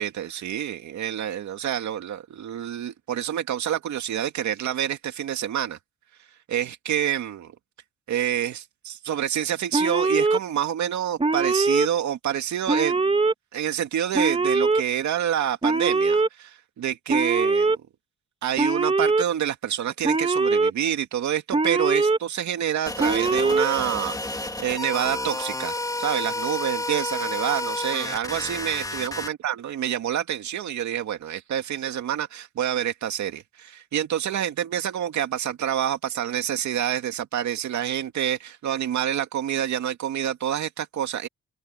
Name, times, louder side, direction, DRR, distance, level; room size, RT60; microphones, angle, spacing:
voice 1, 0.0-5.8 6.5-7.5 8.1-13.2 13.5-17.8 18.4-41.3, right 10 dB, 70° right, 2.4 m, -27 dB
Alarm, 9.7-10.4 11.2-11.9 12.7-13.3 14.1-14.8 15.6-16.3 17.1-17.8 18.6-19.2 20.0-20.7 21.5-22.2 23.0-23.7, right 3 dB, 20° right, 1.7 m, -21 dB
sound 1, 22.9-29.3, left 2 dB, 10° left, 2.2 m, -30 dB
cardioid pair, 90°, 30 cm